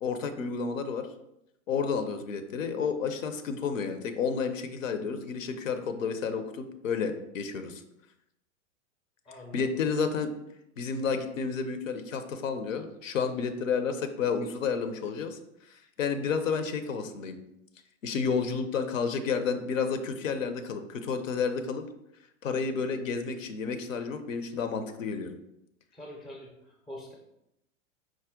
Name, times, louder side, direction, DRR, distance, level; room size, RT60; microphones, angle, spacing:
voice 1, 0.0-1.1 1.7-7.8 9.5-10.3 10.8-15.4 15.7-17.4 18.0-21.8 22.4-25.3, left 5 dB, 75° left, 9 dB, 0.6 m, -31 dB
voice 2, 9.3-9.8 25.9-27.1, left 1 dB, ahead, -1 dB, 0.3 m, -45 dB
4.7 x 2.1 x 3.5 m, 0.82 s
figure-of-eight pair, 95°, 40 cm